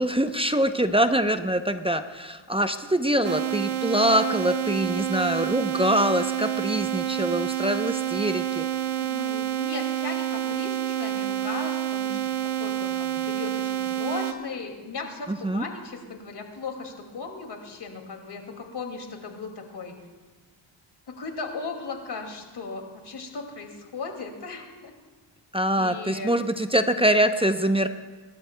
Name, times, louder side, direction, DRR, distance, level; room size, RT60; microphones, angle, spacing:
voice 1, 0.0-8.7 15.3-15.7 25.5-27.9, right 1 dB, 10° right, 8 dB, 0.6 m, -24 dB
voice 2, 3.2-3.6 9.0-12.2 12.6-19.9 21.2-24.9 25.8-26.3, left 4 dB, 55° left, 3 dB, 2.4 m, -37 dB
sound 1, 3.2-14.3, right 12 dB, 80° right, 1.0 m, -28 dB
25.5 x 13.0 x 2.2 m, 1.4 s
cardioid pair, 70°, 49 cm